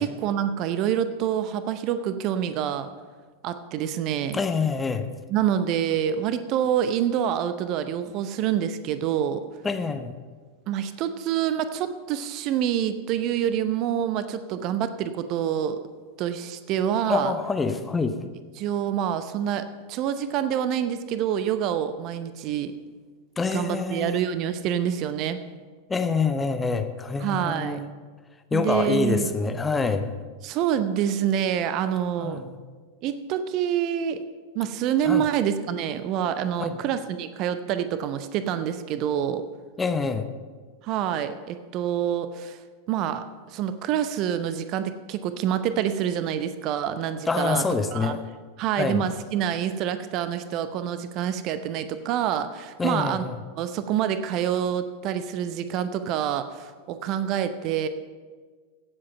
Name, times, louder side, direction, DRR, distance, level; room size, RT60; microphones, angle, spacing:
voice 1, 0.0-2.9 3.4-4.4 5.3-9.4 10.7-15.8 16.2-17.3 18.6-22.7 23.5-25.4 27.2-27.8 28.5-29.3 30.4-32.4 33.0-34.2 34.5-39.5 40.8-42.6 42.9-47.6 47.9-48.2 48.6-53.2 53.6-57.9, right 9 dB, 40° right, 11 dB, 0.7 m, -27 dB
voice 2, 4.3-5.1 9.6-10.1 17.1-18.2 23.4-24.2 25.9-27.8 28.5-30.1 32.2-32.6 35.0-35.2 36.6-36.7 39.8-40.3 47.3-48.2 48.8-49.0 52.8-53.3, left 4 dB, 15° left, 8 dB, 0.9 m, -26 dB
17.0 x 7.7 x 5.6 m, 1.5 s
figure-of-eight pair, 90°, 0 cm